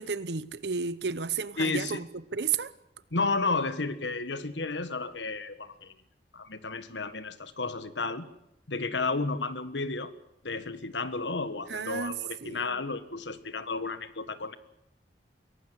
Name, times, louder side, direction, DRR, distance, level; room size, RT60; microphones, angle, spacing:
voice 1, 0.0-2.1 2.3-2.7 11.7-12.2 12.4-12.8, right 5 dB, 70° right, 0.9 m, -32 dB
voice 2, 1.6-2.0 3.1-5.9 6.3-8.3 8.7-10.1 10.4-14.6, left 3 dB, 90° left, 1.6 m, -32 dB
23.0 x 18.0 x 8.2 m
head